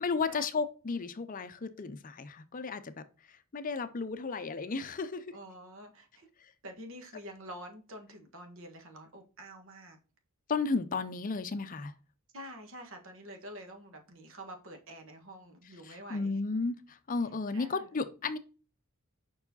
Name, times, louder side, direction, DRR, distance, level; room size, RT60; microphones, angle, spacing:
voice 1, 0.0-2.9 3.5-5.2 10.5-11.9 15.9-18.4, left 4 dB, 40° left, 0.5 m, -33 dB
voice 2, 5.3-6.3 6.6-10.0 12.3-16.4 17.5-17.9, equal, 65° right, 1.5 m, -47 dB
5.5 x 4.7 x 4.0 m
head